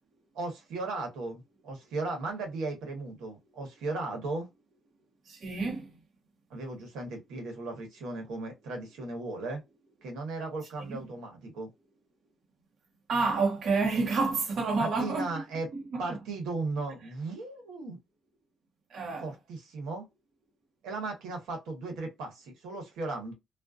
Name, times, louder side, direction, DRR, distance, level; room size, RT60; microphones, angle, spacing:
voice 1, 0.3-4.5 6.5-9.6 10.0-11.7 14.8-15.7 16.0-18.0 19.2-20.1 20.8-23.3, right 3 dB, 90° right, 1.1 m, -36 dB
voice 2, 5.3-6.0 10.9-11.0 13.1-15.3 15.7-16.0 18.9-19.3, right 4 dB, 60° right, 0.7 m, -29 dB
2.5 x 2.1 x 2.4 m
cardioid pair, 90°, 0 cm